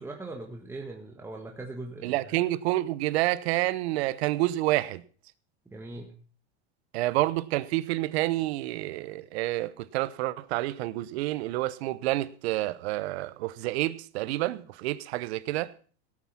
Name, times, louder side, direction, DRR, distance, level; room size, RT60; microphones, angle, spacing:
voice 1, 0.0-2.3 5.6-6.1, right 2 dB, 5° right, 1.7 m, -40 dB
voice 2, 2.0-5.0 6.9-15.7, right 17 dB, 70° right, 1.0 m, -28 dB
17.0 x 8.6 x 5.7 m
supercardioid pair, 130°, 33 cm